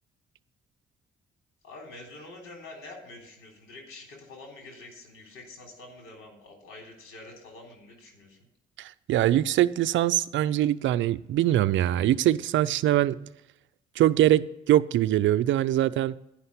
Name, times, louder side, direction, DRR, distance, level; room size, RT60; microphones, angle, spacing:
voice 1, 1.6-8.4, left 2 dB, 85° left, 3.5 m, -46 dB
voice 2, 8.8-13.2 14.0-16.1, right 13 dB, 75° right, 0.5 m, -23 dB
10.5 x 5.7 x 8.1 m
cardioid pair, 90°, 20 cm